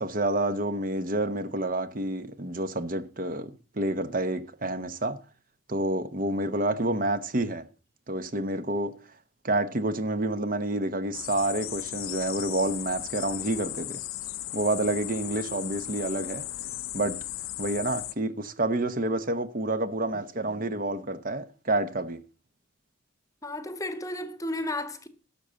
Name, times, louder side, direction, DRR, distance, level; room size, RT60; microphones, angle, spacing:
voice 1, 0.0-5.2 5.7-7.7 8.1-9.0 9.4-14.0 14.5-16.5 16.9-17.2 17.6-22.2, right 2 dB, 40° right, 0.9 m, -29 dB
sound 1, 11.1-18.1, left 15 dB, 80° left, 0.7 m, -36 dB
voice 2, 23.4-25.1, left 1 dB, 15° left, 1.0 m, -33 dB
11.5 x 7.0 x 7.4 m
head